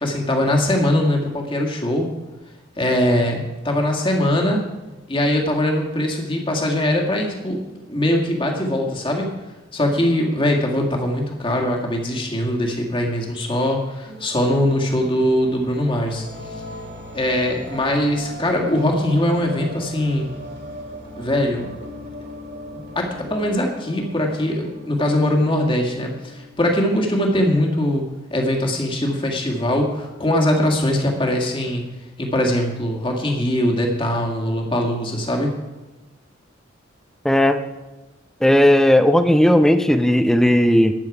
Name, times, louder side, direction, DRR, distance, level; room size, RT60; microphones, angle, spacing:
voice 1, 0.0-2.1 2.8-4.6 5.1-7.6 7.9-9.3 9.7-16.3 17.1-20.3 21.2-21.7 22.7-28.0 28.3-31.9 32.2-35.5, left 1 dB, 25° left, 1 dB, 1.8 m, -21 dB
sound 1, 14.0-27.0, equal, 50° right, 2.4 m, -38 dB
voice 2, 37.2-37.6 38.4-40.9, left 1 dB, ahead, 8 dB, 0.6 m, -15 dB
12.5 x 9.9 x 4.8 m, 1.1 s
head